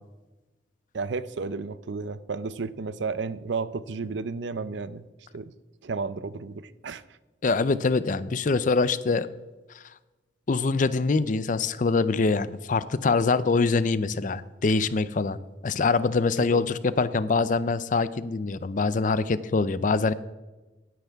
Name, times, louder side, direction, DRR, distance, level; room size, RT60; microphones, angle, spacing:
voice 1, 0.9-5.0 5.3-5.5 5.8-7.0 16.5-16.6, right 4 dB, 70° right, 15 dB, 0.6 m, -32 dB
voice 2, 7.4-9.3 10.5-15.4 15.6-20.1, left 4 dB, 45° left, 15 dB, 0.5 m, -24 dB
16.5 x 9.3 x 3.5 m, 1.1 s
head